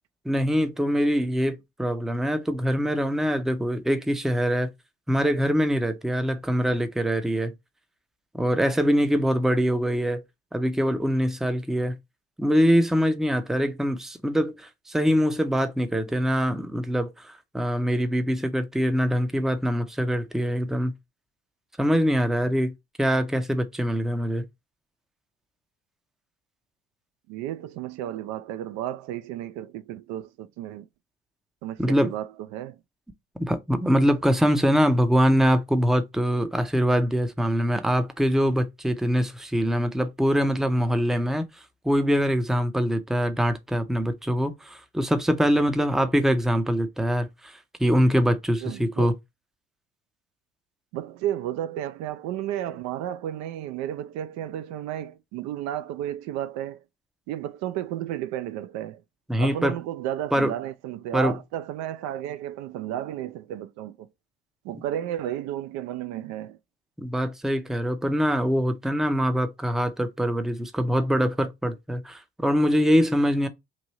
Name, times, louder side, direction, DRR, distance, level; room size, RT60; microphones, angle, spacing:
voice 1, 0.3-4.7 5.1-7.5 8.3-10.2 10.5-12.0 12.4-20.9 21.8-22.7 23.0-24.5 31.8-32.1 33.4-41.4 41.8-49.1 59.3-59.7 60.3-60.5 61.1-61.3 67.0-73.5, equal, ahead, 0.5 m, -23 dB
voice 2, 27.3-30.9 31.6-32.8 48.6-49.1 50.9-56.8 57.3-59.0 59.4-64.1 64.6-66.6, right 12 dB, 60° right, 0.4 m, -33 dB
3.1 x 2.6 x 4.1 m
hypercardioid pair, 60°, 31 cm